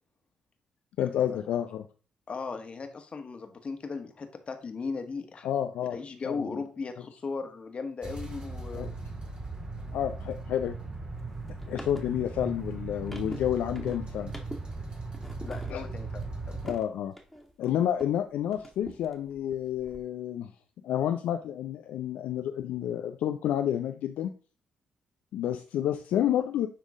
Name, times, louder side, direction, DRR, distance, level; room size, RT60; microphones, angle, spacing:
voice 1, 1.0-1.8 5.4-6.0 6.3-6.6 8.7-8.9 9.9-10.8 11.7-14.3 15.7-15.8 16.6-17.1 17.6-20.5 20.8-24.3 25.3-26.7, left 10 dB, 70° left, 6 dB, 0.5 m, -30 dB
voice 2, 2.3-5.5 5.9-9.0 15.4-16.6, left 4 dB, 45° left, 6 dB, 1.4 m, -37 dB
sound 1, 8.0-16.7, right 3 dB, 35° right, 2.2 m, -38 dB
sound 2, 11.2-18.2 18.5-20.0, equal, ahead, 1.9 m, -46 dB
9.7 x 3.6 x 3.7 m, 0.38 s
hypercardioid pair, 45°, 3 cm